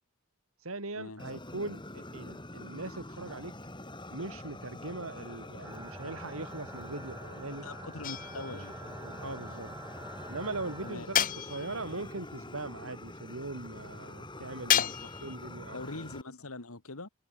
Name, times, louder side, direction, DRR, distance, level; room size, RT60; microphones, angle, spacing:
voice 1, 0.6-3.5 4.1-7.7 8.5-8.6 9.0-9.7 10.3-14.9 15.2-16.1, right 2 dB, 75° right, 3.2 m, -40 dB
Fire, 1.2-16.2, left 1 dB, 20° left, 5.3 m, -45 dB
sound 1, 5.6-11.0, right 2 dB, 15° right, 4.2 m, -47 dB
voice 2, 7.6-8.7 10.8-11.1 14.7-15.1 15.7-17.1, left 2 dB, 90° left, 2.3 m, -43 dB
sound 2, 8.0-8.7 11.1-11.9 14.7-15.4, left 10 dB, 40° left, 0.6 m, -30 dB
head